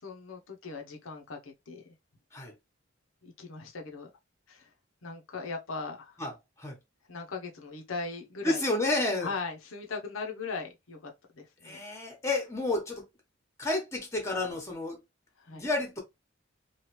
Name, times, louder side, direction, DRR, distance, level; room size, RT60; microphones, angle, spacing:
voice 1, 0.0-1.8 3.2-4.1 4.5-4.7 5.0-6.2 7.1-8.6 9.2-11.1 11.4-11.8 15.4-15.6, left 4 dB, 85° left, 0.8 m, -39 dB
voice 2, 8.4-9.3 11.6-13.1 13.6-15.0 15.5-16.0, left 2 dB, 15° left, 1.0 m, -30 dB
3.1 x 2.4 x 3.0 m
head